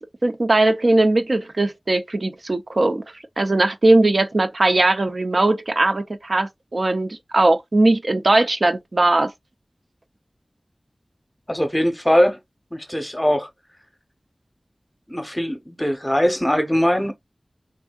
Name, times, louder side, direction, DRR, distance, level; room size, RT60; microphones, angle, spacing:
voice 1, 0.2-3.0 3.4-9.3, right 2 dB, 60° right, 0.4 m, -19 dB
voice 2, 11.5-12.4 12.7-13.5 15.1-17.1, equal, 15° left, 0.7 m, -21 dB
3.4 x 2.6 x 2.2 m
wide cardioid pair, 60°, 0 cm